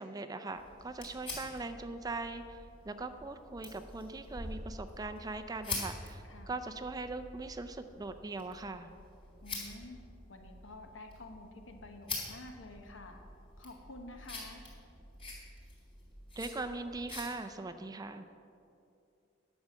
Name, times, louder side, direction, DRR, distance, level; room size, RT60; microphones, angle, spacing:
voice 1, 0.0-2.6 2.8-8.9 16.4-18.2, right 3 dB, 20° right, 8 dB, 0.4 m, -40 dB
sound 1, 0.6-17.3, left 2 dB, 25° left, 3.1 m, -46 dB
voice 2, 6.2-6.6 9.4-10.0 10.3-13.2 13.6-14.7, left 2 dB, 70° left, 4 dB, 1.2 m, -50 dB
11.0 x 6.3 x 7.5 m, 2.6 s
head